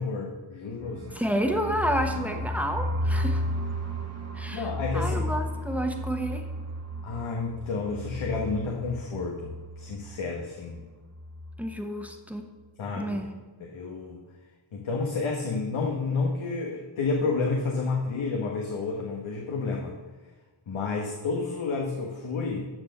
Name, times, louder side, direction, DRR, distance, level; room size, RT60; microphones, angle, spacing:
voice 1, 0.0-1.2 4.5-5.3 7.0-10.8 12.8-13.3 13.6-14.2 14.7-20.0 20.7-22.6, left 4 dB, 85° left, -1 dB, 1.3 m, -30 dB
sound 1, 0.8-10.4 10.7-10.8 11.1-11.6, equal, 35° right, 1.2 m, -33 dB
voice 2, 1.1-3.4 4.3-4.7 4.9-6.4 11.6-12.5 12.9-13.3, equal, 5° right, 4 dB, 1.1 m, -30 dB
12.5 x 4.4 x 6.6 m, 1.3 s
cardioid pair, 80°, 46 cm